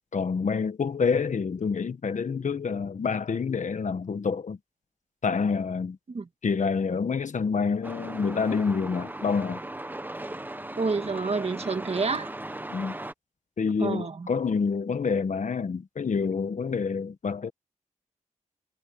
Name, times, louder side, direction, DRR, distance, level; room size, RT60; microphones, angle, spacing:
voice 1, 0.1-4.6 5.2-6.0 6.4-9.6 12.7-12.9 13.6-17.5, left 5 dB, 65° left, 1.4 m, -27 dB
Truck, 7.8-13.1, right 1 dB, 15° right, 1.2 m, -37 dB
voice 2, 10.8-12.3 13.8-14.3, right 4 dB, 50° right, 1.7 m, -28 dB
wide cardioid pair, 85°, 14 cm